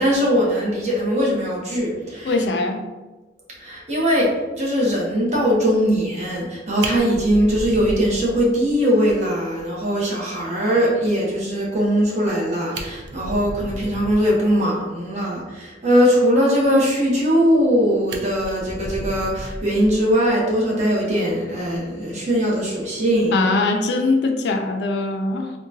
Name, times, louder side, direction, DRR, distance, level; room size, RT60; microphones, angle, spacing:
voice 1, 0.0-2.4 3.6-23.4, equal, 40° right, -4 dB, 0.8 m, -20 dB
voice 2, 2.2-2.9 23.3-25.5, left 3 dB, 75° left, 4 dB, 0.4 m, -21 dB
Fire, 6.4-6.5 6.8-8.7 9.1-9.2 9.6-9.7 10.0-10.1 12.3-12.4 12.6-14.4 17.2-17.7 18.1-20.3 21.6-21.8, right 1 dB, 75° right, 0.4 m, -33 dB
3.6 x 2.2 x 2.6 m, 1.2 s
head